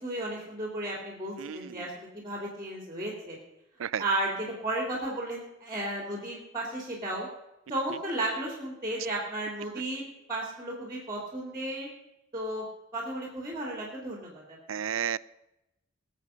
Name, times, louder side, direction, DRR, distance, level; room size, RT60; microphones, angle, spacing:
voice 1, 0.0-3.4 4.0-7.3 7.7-11.9 12.3-12.6 12.9-14.6, right 1 dB, 20° right, 0 dB, 2.8 m, -34 dB
voice 2, 1.4-1.8 3.8-4.0 14.7-15.2, right 8 dB, 85° right, 18 dB, 0.5 m, -32 dB
20.5 x 7.5 x 5.7 m, 0.91 s
head